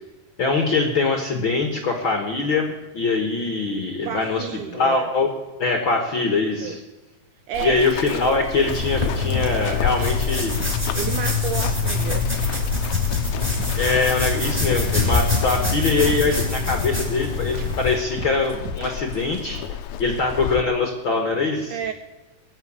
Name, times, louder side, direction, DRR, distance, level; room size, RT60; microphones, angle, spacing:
voice 1, 0.4-2.7 2.9-4.4 4.7-5.3 5.6-6.8 7.6-10.5 13.8-21.8, left 3 dB, 55° left, 1.4 m, -23 dB
voice 2, 4.0-5.1 6.6-6.8 7.5-7.9 10.9-12.5 18.9-19.0 21.7-21.9, right 9 dB, 80° right, 1.8 m, -31 dB
Run, 7.5-20.6, left 11 dB, 85° left, 1.6 m, -32 dB
sound 1, 8.7-18.0, left 3 dB, 10° right, 4.0 m, -24 dB
sound 2, 8.8-9.4 9.6-10.3 10.6-11.9 12.2-12.3 12.5-12.9 13.1-14.4 14.7-14.8 15.0-15.4 15.6-16.9 17.2-17.3 17.5-17.9 18.2-19.4, right 1 dB, 45° right, 1.3 m, -37 dB
21.0 x 7.2 x 8.6 m
omnidirectional pair, 4.3 m